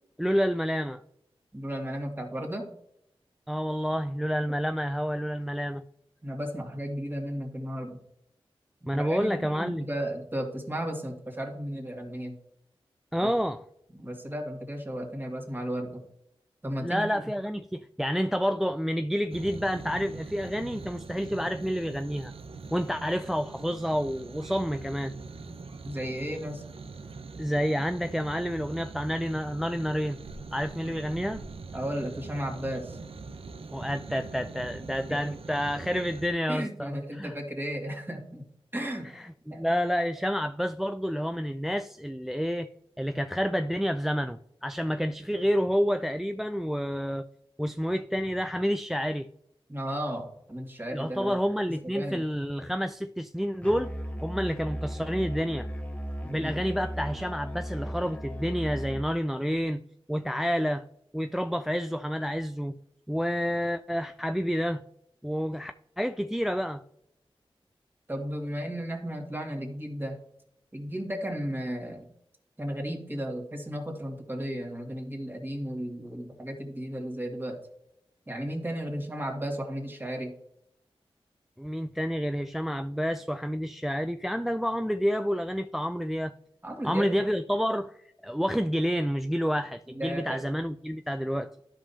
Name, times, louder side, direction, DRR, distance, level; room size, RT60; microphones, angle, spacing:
voice 1, 0.2-1.0 3.5-5.8 8.9-9.9 13.1-13.6 16.8-22.3 22.7-25.1 27.4-30.2 30.5-31.4 33.7-37.4 39.1-42.7 43.0-47.3 47.6-49.3 50.9-53.9 54.2-55.7 56.2-59.8 60.1-60.9 61.1-62.8 63.1-64.8 65.2-66.8 81.6-86.3 86.8-88.0 88.2-91.5, equal, 5° right, 0.3 m, -29 dB
voice 2, 1.5-2.7 6.2-8.0 8.8-12.4 13.2-13.3 13.9-16.0 16.6-17.2 25.4-26.7 31.7-33.0 35.1-35.2 36.5-38.5 38.7-39.1 39.5-39.7 49.7-51.4 51.7-52.2 56.4-56.6 68.1-70.2 70.7-72.1 72.6-77.6 78.3-80.4 86.6-87.2 89.9-90.4, equal, 20° right, 2.1 m, -34 dB
sound 1, 19.3-36.3, right 4 dB, 70° right, 0.7 m, -43 dB
Musical instrument, 53.6-59.1, equal, 15° left, 1.2 m, -36 dB
12.5 x 5.4 x 2.8 m
wide cardioid pair, 65°, 10 cm